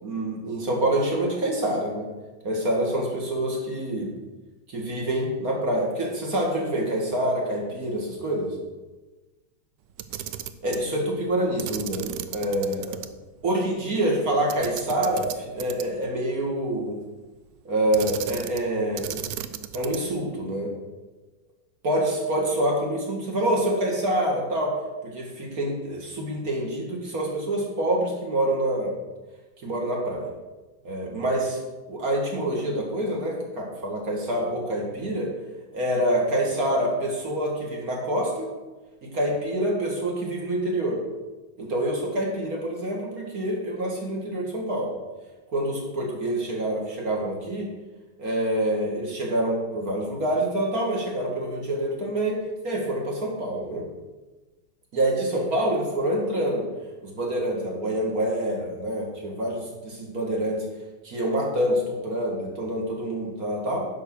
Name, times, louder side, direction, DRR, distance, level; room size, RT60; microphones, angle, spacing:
voice 1, 0.0-2.1 2.4-4.1 4.7-8.5 10.6-13.0 13.4-17.0 17.6-19.2 19.7-20.7 21.8-24.8 25.0-28.9 29.6-30.3 30.8-31.6 31.9-35.3 35.7-38.5 39.0-41.0 41.6-44.9 45.5-47.7 48.2-52.4 52.6-53.8 54.9-56.7 57.0-60.6 61.0-63.8, right 1 dB, 45° right, -1 dB, 2.4 m, -26 dB
Camera, 9.9-10.9 11.6-13.1 13.4-13.5 14.5-16.1 17.9-18.7 19.0-20.2, right 11 dB, 75° right, 1.1 m, -35 dB
10.0 x 5.3 x 6.4 m, 1.2 s
omnidirectional pair, 2.2 m